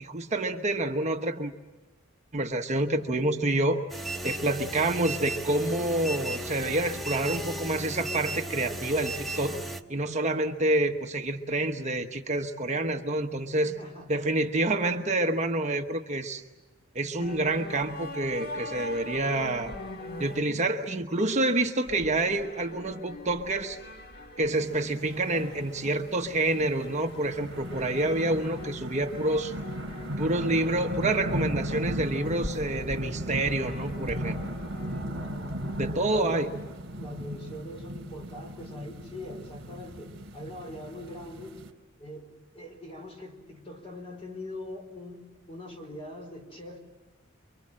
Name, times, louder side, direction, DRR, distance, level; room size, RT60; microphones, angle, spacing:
voice 1, 0.0-1.5 2.3-3.8 4.2-9.6 9.9-13.8 14.1-16.4 16.9-19.7 20.2-23.8 24.4-29.5 30.2-34.4 35.8-36.5, right 2 dB, 35° right, 4 dB, 1.0 m, -28 dB
sound 1, 3.9-9.8, right 2 dB, ahead, 1.2 m, -35 dB
voice 2, 13.6-14.3 15.0-15.1 36.0-41.6 42.0-46.8, left 1 dB, 30° left, 3 dB, 4.5 m, -42 dB
sound 2, 17.2-20.4 21.9-35.9, left 1 dB, 50° left, 1.8 m, -43 dB
sound 3, 24.5-41.7, right 1 dB, 60° right, 3.7 m, -37 dB
28.5 x 24.0 x 7.6 m, 1.2 s
head